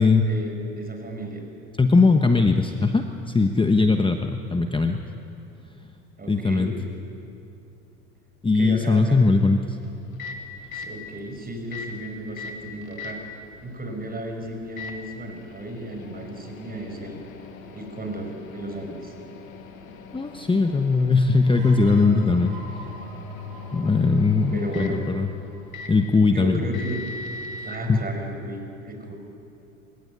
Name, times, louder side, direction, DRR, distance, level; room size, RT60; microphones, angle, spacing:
voice 1, 0.0-1.4 6.2-6.7 8.5-9.2 10.7-13.4 13.6-17.2 17.7-19.1 24.5-25.0 26.3-27.0 27.6-29.1, right 1 dB, 20° right, 4 dB, 5.9 m, -34 dB
voice 2, 1.8-3.1 3.3-5.0 6.3-6.7 8.4-9.6 20.1-22.6 23.7-25.3 25.9-26.6 27.9-28.0, left 3 dB, 10° left, 6 dB, 1.2 m, -19 dB
Microwave oven, 9.8-27.8, left 3 dB, 90° left, 2.4 m, -41 dB
sound 1, 21.4-26.9, left 1 dB, 65° right, 7.4 m, -42 dB
27.5 x 16.5 x 9.8 m, 2.7 s
hypercardioid pair, 85°, 40 cm